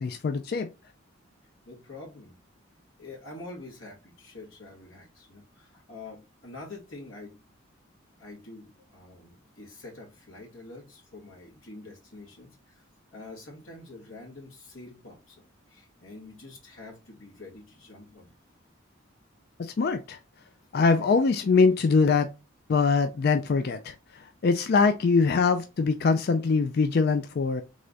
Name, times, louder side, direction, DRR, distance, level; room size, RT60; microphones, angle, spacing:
voice 1, 0.0-0.7 19.6-20.2 20.7-22.3 22.7-27.6, left 4 dB, 50° left, 0.3 m, -23 dB
voice 2, 1.6-2.4 3.0-7.4 8.2-12.9 13.1-18.3 21.0-21.1, left 2 dB, 85° left, 2.0 m, -46 dB
3.7 x 3.3 x 3.9 m
head